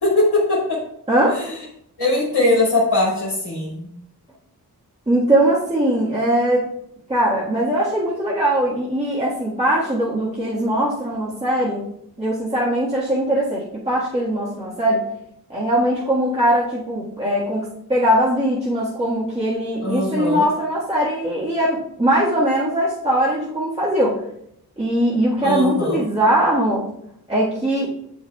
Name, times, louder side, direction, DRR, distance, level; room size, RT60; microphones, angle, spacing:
voice 1, 0.0-0.8 1.3-1.6 2.0-3.9 19.8-20.5 25.4-26.0, left 2 dB, 75° left, -6 dB, 2.1 m, -20 dB
voice 2, 1.1-1.4 5.1-6.6 7.1-11.8 12.2-15.0 15.5-24.2 24.8-26.8 27.3-27.9, right 1 dB, 15° right, -8 dB, 1.6 m, -20 dB
7.2 x 5.5 x 2.3 m, 0.73 s
wide cardioid pair, 60°, 39 cm